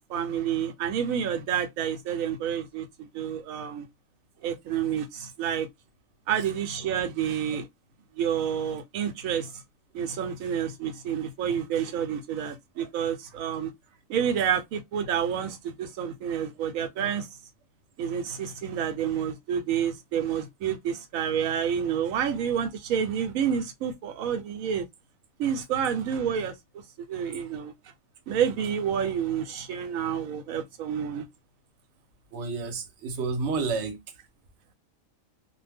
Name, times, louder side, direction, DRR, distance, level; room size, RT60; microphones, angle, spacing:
voice 1, 0.0-3.9 4.4-5.7 6.3-7.7 8.2-9.6 9.9-13.7 14.1-17.3 18.0-24.8 25.4-26.5 27.0-27.7 28.3-31.3, right 8 dB, 90° right, 1.0 m, -29 dB
voice 2, 32.3-34.0, right 4 dB, 65° right, 1.0 m, -30 dB
2.5 x 2.1 x 3.3 m
omnidirectional pair, 1.4 m